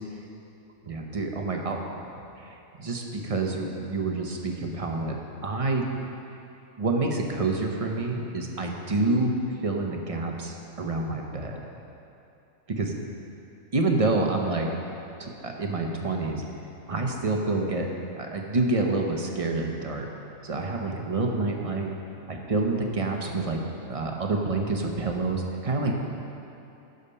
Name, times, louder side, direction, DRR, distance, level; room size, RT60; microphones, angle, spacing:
voice 1, 0.9-1.8 2.4-5.9 6.8-9.3 9.6-11.6 12.7-12.9 13.7-14.7 15.2-16.4 16.9-20.1 20.4-21.9 22.3-23.6 23.9-25.9, right 3 dB, 35° right, 1 dB, 0.7 m, -28 dB
12.0 x 5.1 x 5.5 m, 2.8 s
omnidirectional pair, 1.4 m